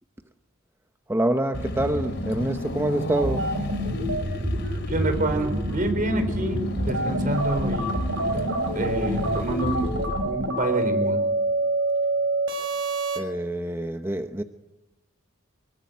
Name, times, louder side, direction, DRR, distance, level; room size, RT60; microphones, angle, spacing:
voice 1, 1.1-3.5 13.2-14.4, right 1 dB, 10° right, 0.9 m, -26 dB
Car / Engine, 1.5-10.7, equal, 60° left, 3.1 m, -32 dB
sound 1, 3.1-13.2, right 1 dB, 75° right, 5.3 m, -27 dB
voice 2, 4.9-7.9 8.7-9.9 10.2-11.2, right 2 dB, 45° right, 4.4 m, -27 dB
24.5 x 21.5 x 9.4 m
head